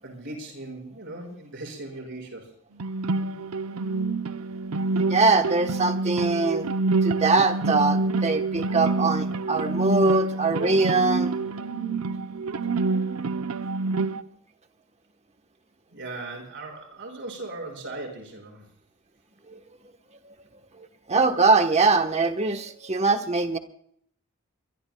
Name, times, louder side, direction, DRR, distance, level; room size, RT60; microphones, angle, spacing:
voice 1, 0.0-2.5 15.9-18.7, right 2 dB, 55° right, 1 dB, 5.8 m, -38 dB
sound 1, 2.8-14.2, right 3 dB, 75° right, 0.7 m, -27 dB
voice 2, 5.0-6.7 7.0-11.3 19.5-19.6 20.2-20.3 20.8-23.6, right 3 dB, 30° right, 8 dB, 1.1 m, -22 dB
23.5 x 23.5 x 2.3 m, 0.68 s
head